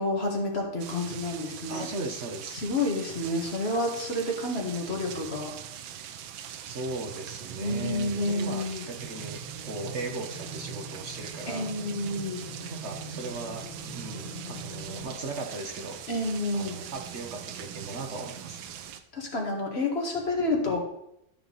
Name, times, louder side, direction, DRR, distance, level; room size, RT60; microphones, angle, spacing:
voice 1, 0.0-1.9 2.5-5.5 7.6-8.9 11.5-12.4 16.1-16.8 19.1-20.8, left 2 dB, 35° left, 0 dB, 1.7 m, -29 dB
sound 1, 0.8-19.0, right 9 dB, 85° right, 1.5 m, -42 dB
voice 2, 1.7-2.6 6.7-11.7 12.7-16.0 16.5-18.6, right 3 dB, 45° right, 4 dB, 1.0 m, -38 dB
sound 2, 8.9-15.1, right 2 dB, 70° right, 3.8 m, -42 dB
12.5 x 5.7 x 3.9 m, 0.80 s
omnidirectional pair, 2.2 m